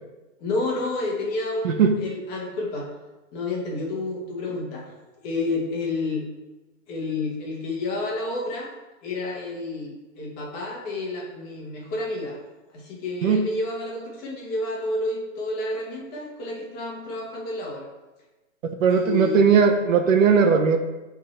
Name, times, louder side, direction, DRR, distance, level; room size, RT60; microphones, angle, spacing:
voice 1, 0.4-2.9 3.3-4.9 5.2-6.2 6.9-8.7 9.0-12.4 12.7-17.9 18.9-19.4, left 2 dB, 25° left, -2 dB, 1.4 m, -30 dB
voice 2, 1.6-2.0 13.2-13.4 18.8-20.8, right 6 dB, 70° right, 5 dB, 1.1 m, -18 dB
8.5 x 3.9 x 4.3 m, 1.1 s
hypercardioid pair, 155°, 40 cm